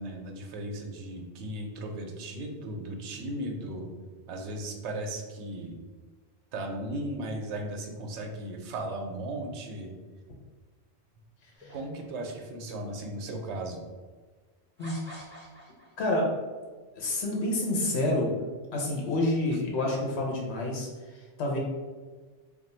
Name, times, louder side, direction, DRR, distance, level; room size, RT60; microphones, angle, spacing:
voice 1, 0.0-3.9 4.3-5.8 6.5-9.9 11.7-13.8, right 1 dB, 75° right, 2 dB, 0.9 m, -36 dB
sound 1, 11.5-12.5 13.3-13.4 14.8-16.1, left 1 dB, 10° right, 0.8 m, -48 dB
voice 2, 16.0-16.3 16.9-18.3 18.7-21.6, left 1 dB, 70° left, -1 dB, 1.1 m, -28 dB
2.5 x 2.5 x 4.1 m, 1.4 s
omnidirectional pair, 1.2 m